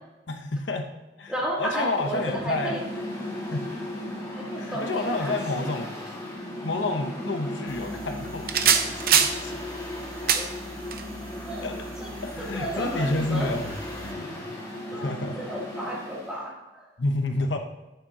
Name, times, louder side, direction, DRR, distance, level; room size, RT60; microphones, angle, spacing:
voice 1, 0.3-0.9 1.2-2.8 3.5-3.7 4.5-5.9 6.6-9.6 11.6-11.9 12.2-14.5 14.9-15.4 17.0-17.6, left 2 dB, 90° left, 5 dB, 0.9 m, -30 dB
voice 2, 1.3-2.8 4.3-5.7 10.2-10.5 11.4-13.5 14.6-16.9, right 1 dB, 5° right, -5 dB, 2.6 m, -33 dB
Mechanical fan, 1.6-16.4, left 1 dB, 20° left, 1.9 m, -36 dB
sound 1, 7.7-14.1, right 7 dB, 55° right, 0.8 m, -28 dB
11.5 x 8.9 x 2.9 m, 1.1 s
head